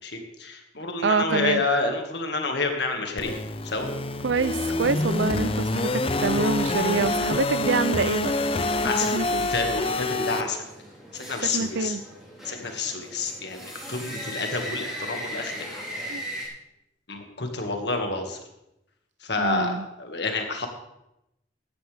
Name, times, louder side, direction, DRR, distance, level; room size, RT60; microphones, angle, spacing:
voice 1, 0.0-3.4 3.6-3.9 8.8-9.2 9.5-10.7 11.1-12.0 12.4-15.7 17.1-18.4 19.2-20.7, left 3 dB, 60° left, 4 dB, 1.9 m, -29 dB
voice 2, 1.0-1.6 4.2-8.3 9.1-9.5 11.5-12.0 16.1-16.2 19.4-19.9, right 4 dB, 75° right, 15 dB, 0.5 m, -26 dB
sound 1, 3.2-10.4, left 2 dB, 30° left, 0.6 m, -26 dB
sound 2, 7.6-16.5, equal, ahead, 3.9 m, -39 dB
16.0 x 11.0 x 3.5 m, 0.87 s
head